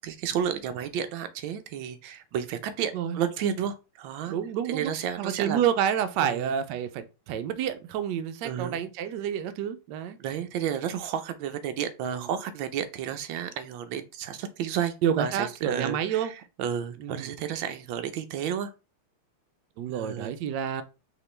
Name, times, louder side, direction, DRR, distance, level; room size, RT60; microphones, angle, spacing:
voice 1, 0.0-4.3 4.7-5.6 6.2-6.5 8.4-8.8 10.2-18.7 19.9-20.3, right 8 dB, 70° right, 1.3 m, -32 dB
voice 2, 4.3-4.9 5.2-10.2 12.0-12.2 15.0-16.3 17.0-17.3 19.8-20.8, right 9 dB, 90° right, 0.9 m, -29 dB
4.9 x 2.9 x 3.2 m
omnidirectional pair, 2.4 m